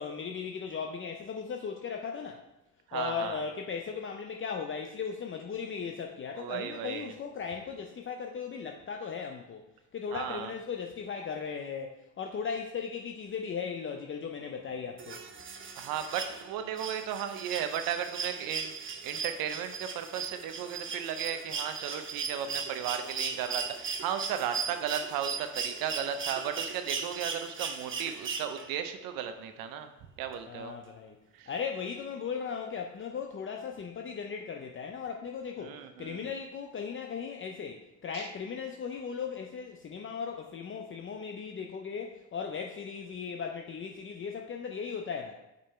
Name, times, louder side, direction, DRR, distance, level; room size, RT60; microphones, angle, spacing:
voice 1, 0.0-2.4 2.9-9.6 9.9-15.2 30.5-31.2 31.5-45.3, left 6 dB, 35° left, 3 dB, 0.6 m, -37 dB
voice 2, 2.9-3.4 6.3-7.1 10.1-10.5 15.8-29.9 30.2-30.7 31.3-31.5 35.6-36.3 38.1-38.3, right 9 dB, 80° right, 8 dB, 0.7 m, -35 dB
sound 1, 15.0-28.9 30.3-30.4, right 5 dB, 35° right, 0.8 m, -38 dB
5.4 x 5.4 x 4.3 m, 0.94 s
supercardioid pair, 70°, 34 cm